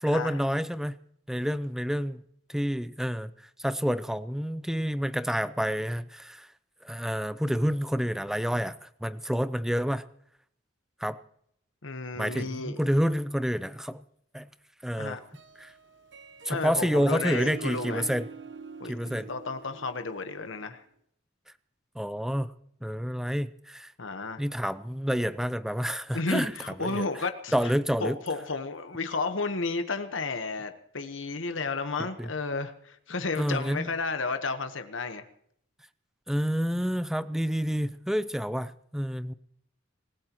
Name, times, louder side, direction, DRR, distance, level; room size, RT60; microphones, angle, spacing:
voice 1, 0.0-1.0 1.3-2.2 2.5-3.3 3.6-6.5 6.8-10.0 11.0-11.2 12.2-14.0 14.3-14.5 14.8-15.2 15.6-15.7 16.4-18.3 18.9-19.3 22.0-22.5 22.8-23.9 24.4-27.1 27.5-28.2 32.0-32.3 33.4-33.9 36.3-39.3, equal, ahead, 14 dB, 0.5 m, -29 dB
voice 2, 11.8-12.8 14.9-15.2 16.5-18.1 18.8-20.8 24.0-24.4 26.1-27.5 28.0-35.2, left 3 dB, 80° left, 8 dB, 1.2 m, -32 dB
Harp, 15.2-20.7, right 4 dB, 65° right, 1.0 m, -45 dB
25.5 x 16.0 x 3.0 m, 0.68 s
head